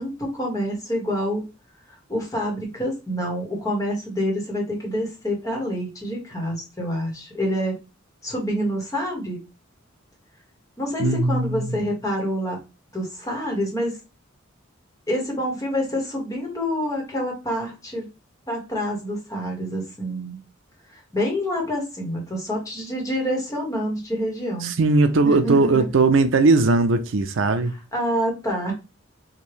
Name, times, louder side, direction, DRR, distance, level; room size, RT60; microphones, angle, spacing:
voice 1, 0.0-1.4 2.1-7.7 8.2-9.4 10.8-12.6 12.9-14.0 15.1-18.1 18.5-20.4 20.9-24.7 25.2-25.9 27.9-28.7, equal, 15° left, 1.5 m, -27 dB
voice 2, 11.0-11.8 24.6-27.8, right 3 dB, 70° right, 0.5 m, -19 dB
5.0 x 2.7 x 3.1 m
head